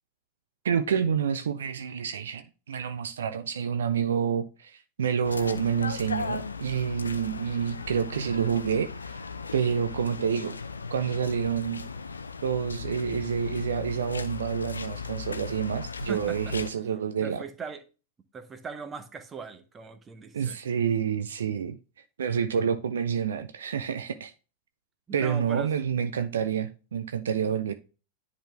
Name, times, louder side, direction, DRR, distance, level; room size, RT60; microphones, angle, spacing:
voice 1, 0.6-9.2 9.5-10.5 10.9-11.8 12.4-17.4 20.3-21.8 22.2-24.3 25.1-27.7, right 7 dB, 65° right, 0.5 m, -28 dB
sound 1, 5.2-16.7, left 5 dB, 75° left, 0.6 m, -37 dB
voice 2, 17.2-17.8 18.3-20.6 25.1-25.7, right 5 dB, 20° right, 1.0 m, -39 dB
10.0 x 4.1 x 3.2 m
figure-of-eight pair, 90°, 0 cm